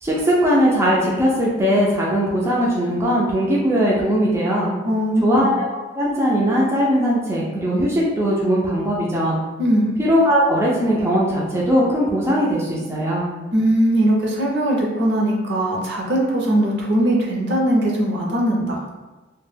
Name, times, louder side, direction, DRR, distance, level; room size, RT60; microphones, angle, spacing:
voice 1, 0.0-4.7 5.2-5.7 5.9-9.4 10.0-13.3, equal, 15° right, -5 dB, 0.4 m, -19 dB
voice 2, 4.8-5.5 9.6-9.9 13.5-18.8, right 1 dB, 60° right, -2 dB, 0.6 m, -20 dB
2.2 x 2.1 x 3.2 m, 1.2 s
head